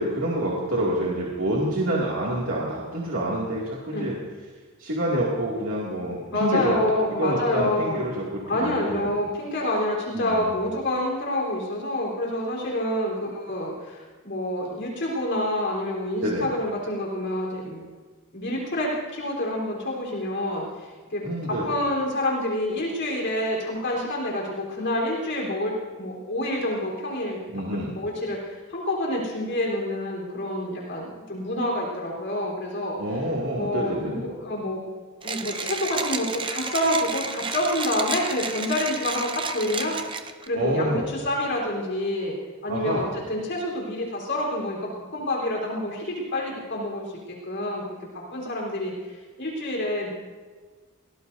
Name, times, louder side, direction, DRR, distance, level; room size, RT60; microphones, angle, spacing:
voice 1, 0.0-4.2 4.8-6.8 7.2-9.1 10.1-10.5 16.2-16.5 21.2-21.7 27.5-27.9 33.0-34.2 40.5-41.0 42.7-43.1, right 1 dB, 65° right, -6 dB, 2.5 m, -27 dB
voice 2, 6.3-8.0 8.5-17.9 18.3-27.4 27.9-33.0 33.5-34.8 35.2-40.0 40.5-42.4 42.6-47.8 48.3-50.1, left 1 dB, 55° left, -3 dB, 4.0 m, -28 dB
Mechanisms, 35.2-40.5, right 5 dB, 20° right, 0.6 m, -32 dB
23.0 x 18.5 x 2.7 m, 1.4 s
head